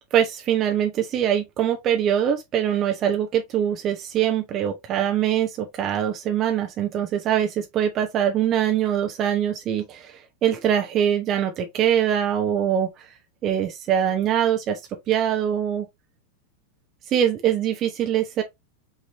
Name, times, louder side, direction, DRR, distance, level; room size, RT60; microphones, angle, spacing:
voice 1, 0.1-13.1 13.4-14.8 15.1-15.9 17.1-18.4, right 10 dB, 30° right, 0.8 m, -23 dB
5.6 x 3.0 x 2.9 m
figure-of-eight pair, 90°, 0 cm